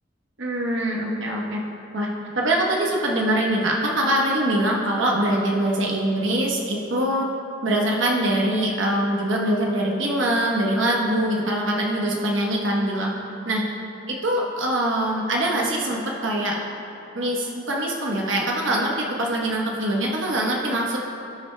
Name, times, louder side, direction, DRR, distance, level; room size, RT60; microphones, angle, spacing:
voice 1, 0.4-1.6 1.9-2.1 2.3-7.3 7.6-13.1 13.4-13.6 14.1-16.6 17.1-18.9 19.2-21.0, right 1 dB, 90° right, -2 dB, 1.0 m, -23 dB
17.5 x 6.3 x 2.2 m, 2.9 s
head